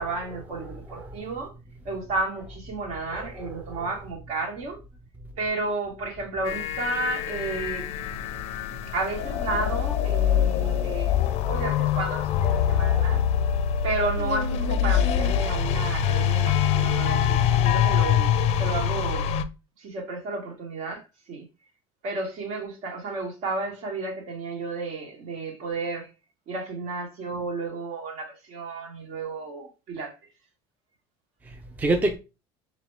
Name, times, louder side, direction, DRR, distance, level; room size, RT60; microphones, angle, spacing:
voice 1, 0.0-1.5 1.8-4.8 5.4-7.8 8.9-11.1 11.4-13.2 13.8-19.3 19.8-21.5 22.0-26.1 26.5-30.2, right 3 dB, 65° right, 1.5 m, -32 dB
voice 2, 0.6-1.1 3.1-3.8 10.2-10.8 11.6-11.7 12.6-13.2 31.4-32.2, right 2 dB, 15° right, 0.4 m, -31 dB
sound 1, 6.4-19.4, left 9 dB, 55° left, 0.4 m, -24 dB
4.0 x 3.0 x 3.2 m
cardioid pair, 140°, 13 cm